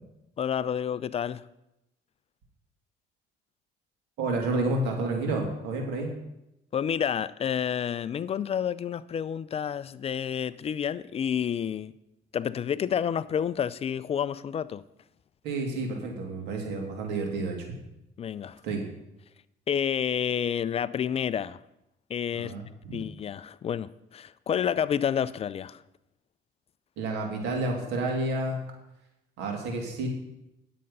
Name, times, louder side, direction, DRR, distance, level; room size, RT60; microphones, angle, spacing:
voice 1, 0.4-1.4 6.7-11.9 12.3-14.8 18.2-18.6 19.7-21.6 22.1-22.5 22.9-25.8, left 8 dB, 35° left, 0.4 m, -29 dB
voice 2, 4.2-6.1 15.4-17.7 18.6-18.8 22.3-23.0 27.0-28.6 29.4-30.1, right 2 dB, 85° right, 2.6 m, -30 dB
10.0 x 7.6 x 5.4 m
cardioid pair, 110°, 17 cm